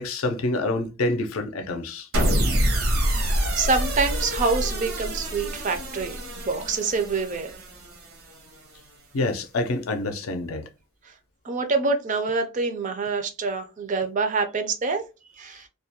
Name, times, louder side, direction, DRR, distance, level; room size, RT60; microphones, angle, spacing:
voice 1, 0.0-2.1 9.1-10.7, left 2 dB, 70° left, 0.5 m, -27 dB
sound 1, 2.1-8.5, right 1 dB, 75° right, 0.8 m, -26 dB
voice 2, 3.5-7.6 11.0-11.1 11.4-15.0 15.4-15.7, right 4 dB, 35° right, 0.4 m, -26 dB
2.3 x 2.1 x 2.8 m
head